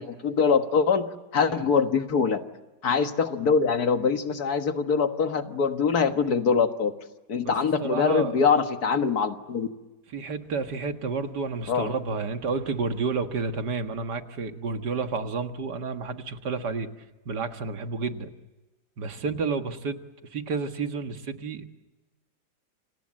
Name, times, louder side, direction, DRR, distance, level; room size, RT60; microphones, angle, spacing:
voice 1, 0.0-2.4 2.8-6.9 7.3-9.7 11.7-11.9, left 5 dB, 70° left, 7 dB, 2.0 m, -23 dB
voice 2, 7.8-8.4 10.1-16.9 17.3-18.3 19.0-20.0 20.3-21.7, right 4 dB, 85° right, 7 dB, 2.2 m, -30 dB
29.0 x 26.5 x 7.6 m, 1.1 s
omnidirectional pair, 1.7 m